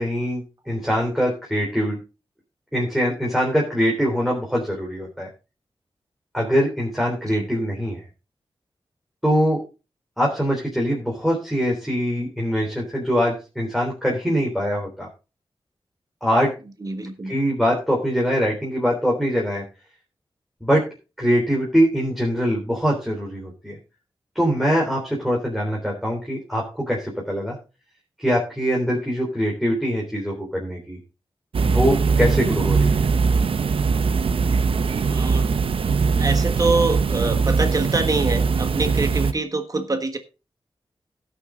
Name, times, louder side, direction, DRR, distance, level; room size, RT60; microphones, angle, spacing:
voice 1, 0.0-2.0 2.7-5.3 6.3-8.0 9.2-9.6 10.2-15.1 16.2-16.5 17.3-19.6 20.6-20.8 21.2-23.8 24.4-27.6 28.2-31.0 31.6-33.1, equal, ahead, -3 dB, 3.6 m, -23 dB
voice 2, 16.8-17.3 35.0-35.5 36.2-40.2, right 3 dB, 40° right, 7 dB, 1.4 m, -25 dB
sound 1, 31.5-39.3, right 5 dB, 75° right, 0.8 m, -21 dB
17.0 x 6.4 x 3.8 m, 0.31 s
wide cardioid pair, 110°, 9 cm